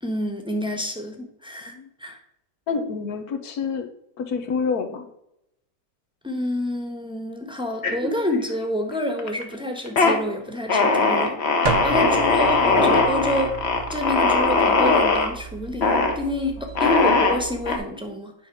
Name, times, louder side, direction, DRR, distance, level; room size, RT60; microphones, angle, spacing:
voice 1, 0.0-1.7 2.0-2.2 6.2-13.6 13.9-18.3, left 1 dB, 5° right, 2 dB, 1.0 m, -28 dB
voice 2, 2.7-3.9 4.2-5.1 11.9-12.0, left 5 dB, 80° left, 7 dB, 1.5 m, -27 dB
sound 1, 7.8-8.6 8.9-9.4 9.8-10.2 10.7-15.3 15.8-16.2 16.8-17.8, left 3 dB, 50° left, 1.2 m, -20 dB
sound 2, 11.6-17.8, right 6 dB, 35° right, 0.9 m, -34 dB
9.3 x 3.9 x 5.9 m, 0.79 s
omnidirectional pair, 1.6 m